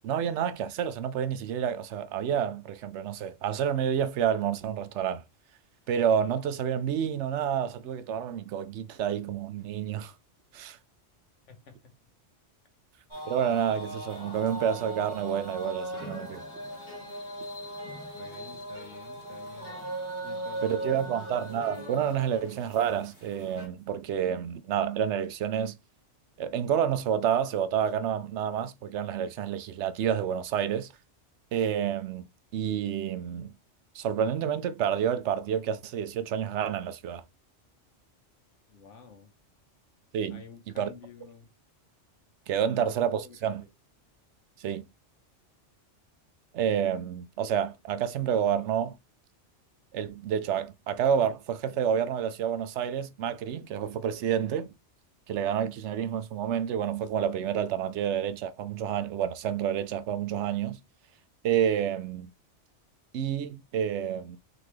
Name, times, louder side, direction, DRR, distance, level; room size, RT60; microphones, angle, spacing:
voice 1, 0.0-5.2 5.9-10.1 10.5-10.8 13.3-16.4 20.6-25.7 26.4-30.9 31.5-32.3 32.5-33.5 33.9-37.2 40.1-40.4 40.8-40.9 42.5-43.6 44.6-44.8 46.5-49.0 49.9-54.7 55.3-60.8 61.4-62.3 63.1-64.4, right 8 dB, 75° right, 0.8 m, -29 dB
voice 2, 11.5-11.9 18.1-19.8 20.2-21.4 38.7-39.3 40.3-41.5 42.7-42.9 43.2-43.7, left 5 dB, 80° left, 1.4 m, -51 dB
sound 1, 13.1-23.7, right 1 dB, 25° left, 1.9 m, -39 dB
3.8 x 3.4 x 3.1 m
omnidirectional pair, 1.2 m